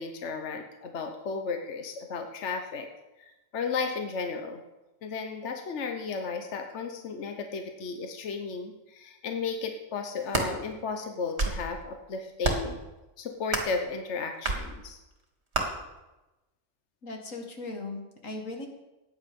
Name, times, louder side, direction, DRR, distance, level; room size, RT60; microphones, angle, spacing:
voice 1, 0.0-2.9 3.2-4.6 5.0-12.8 13.2-15.0, left 4 dB, 65° left, 5 dB, 1.3 m, -34 dB
sound 1, 10.1-10.5 11.2-11.7 12.4-12.8 13.5-13.8 14.4-14.6 15.5-15.7, right 3 dB, 55° right, 2.3 m, -28 dB
voice 2, 17.0-18.7, left 2 dB, 85° left, 3 dB, 2.3 m, -38 dB
15.5 x 9.6 x 5.3 m, 1.0 s
omnidirectional pair, 1.3 m